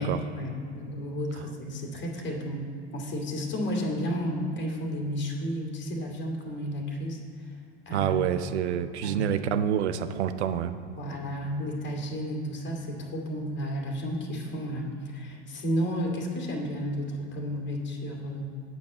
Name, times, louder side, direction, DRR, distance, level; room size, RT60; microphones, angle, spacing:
voice 1, 0.0-2.7 2.9-7.5 7.9-8.1 9.0-9.2 11.0-18.4, equal, 30° left, -1 dB, 2.2 m, -32 dB
voice 2, 7.9-10.8, right 9 dB, 75° right, 11 dB, 0.6 m, -27 dB
8.7 x 5.3 x 7.7 m, 2.4 s
hypercardioid pair, 85°, 34 cm